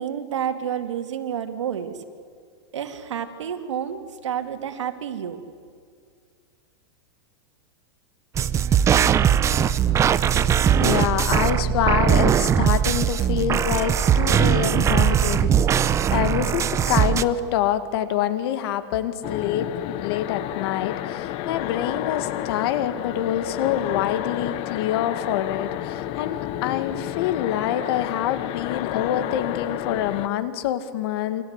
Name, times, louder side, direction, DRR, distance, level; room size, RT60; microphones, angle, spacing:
voice 1, 0.0-2.0 2.7-5.4, right 8 dB, 90° right, 6 dB, 2.5 m, -29 dB
sound 1, 8.4-17.2, right 8 dB, 20° right, 0.7 m, -20 dB
voice 2, 10.8-31.4, left 10 dB, 60° left, 10 dB, 2.1 m, -26 dB
sound 2, 19.2-30.3, left 13 dB, 40° left, 1.0 m, -30 dB
28.0 x 24.5 x 8.3 m, 2.2 s
supercardioid pair, 140°, 15 cm